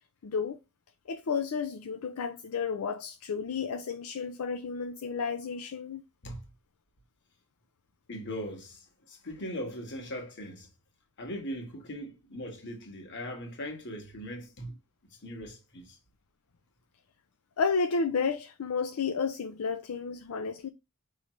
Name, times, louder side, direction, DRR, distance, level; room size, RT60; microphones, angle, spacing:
voice 1, 0.2-0.6 1.1-6.0 17.6-20.7, left 5 dB, 75° left, 0.5 m, -32 dB
voice 2, 8.1-10.7 11.2-14.7 15.2-16.0, equal, 55° left, 1.5 m, -39 dB
5.1 x 3.1 x 3.1 m
head